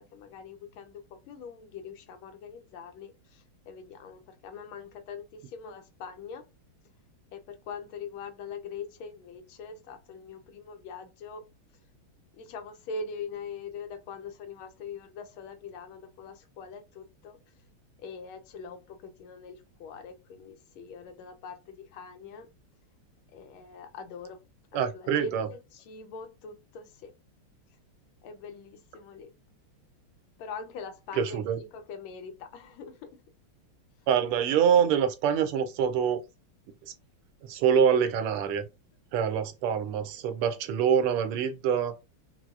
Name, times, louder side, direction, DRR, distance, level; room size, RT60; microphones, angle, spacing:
voice 1, 0.1-6.4 7.3-11.4 12.4-17.4 18.0-22.5 23.3-24.4 24.7-27.1 28.2-29.3 30.4-33.1, left 4 dB, 75° left, 1.4 m, -42 dB
voice 2, 24.7-25.5 31.2-31.6 34.1-36.2 37.4-38.7 39.1-41.9, right 8 dB, 90° right, 1.5 m, -25 dB
5.8 x 2.0 x 2.4 m
omnidirectional pair, 2.3 m